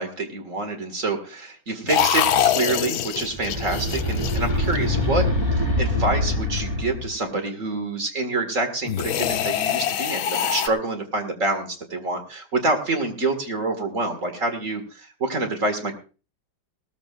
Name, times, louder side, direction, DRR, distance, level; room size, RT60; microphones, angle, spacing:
voice 1, 0.0-15.9, right 2 dB, 40° right, 6 dB, 2.3 m, -27 dB
sound 1, 1.9-5.1 8.9-10.7, left 9 dB, 90° left, 1.6 m, -24 dB
sound 2, 3.2-7.2, left 1 dB, 10° right, 5.6 m, -24 dB
18.5 x 14.0 x 2.5 m, 0.35 s
omnidirectional pair, 2.2 m